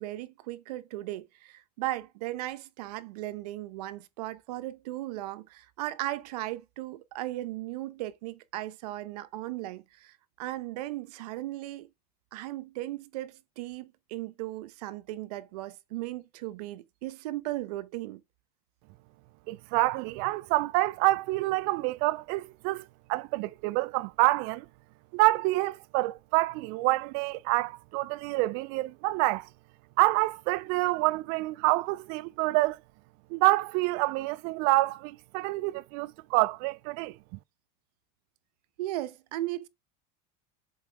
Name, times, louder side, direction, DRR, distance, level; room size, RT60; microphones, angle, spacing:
voice 1, 0.0-11.9 12.3-18.2 38.8-39.7, right 16 dB, 85° right, 0.9 m, -37 dB
voice 2, 19.5-24.6 25.1-29.5 30.0-32.8 33.3-37.1, right 20 dB, 55° right, 0.4 m, -27 dB
7.3 x 4.7 x 3.4 m
supercardioid pair, 150°, 20 cm